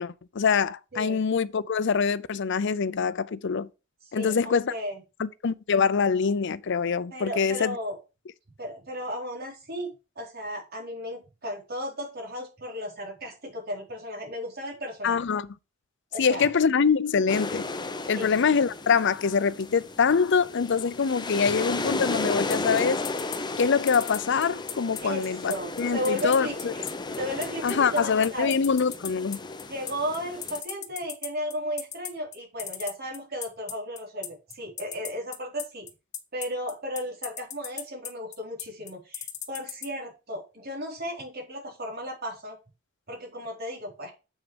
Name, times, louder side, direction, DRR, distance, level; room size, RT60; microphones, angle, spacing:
voice 1, 0.0-3.7 4.1-4.7 5.2-7.7 15.0-15.5 16.2-17.7 18.1-23.0 23.6-26.7 27.6-29.4, left 6 dB, 60° left, 0.5 m, -24 dB
voice 2, 4.1-5.0 7.1-8.0 8.6-15.2 16.1-16.5 18.1-18.3 21.5-21.6 25.0-26.8 27.2-28.5 29.7-35.9 36.3-42.6 43.1-44.1, equal, 50° right, 4.4 m, -34 dB
sound 1, 17.3-30.6, left 3 dB, 20° left, 0.8 m, -34 dB
sound 2, 22.5-39.9, left 10 dB, 35° left, 1.1 m, -36 dB
7.3 x 6.4 x 5.2 m
head